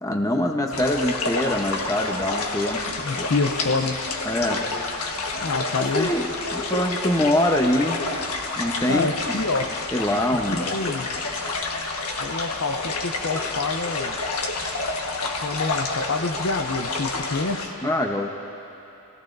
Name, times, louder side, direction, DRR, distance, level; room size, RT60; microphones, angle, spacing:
voice 1, 0.0-3.3 4.2-4.6 5.9-8.0 8.6-9.4 9.9-10.7 17.8-18.3, left 1 dB, 15° left, 2 dB, 0.9 m, -24 dB
sound 1, 0.7-17.7, left 3 dB, 80° left, 1.4 m, -29 dB
voice 2, 3.0-4.0 5.4-6.1 8.9-9.7 10.5-11.2 12.2-14.2 15.1-17.7, left 3 dB, 60° left, 6 dB, 0.7 m, -27 dB
29.0 x 16.5 x 2.6 m, 2.8 s
head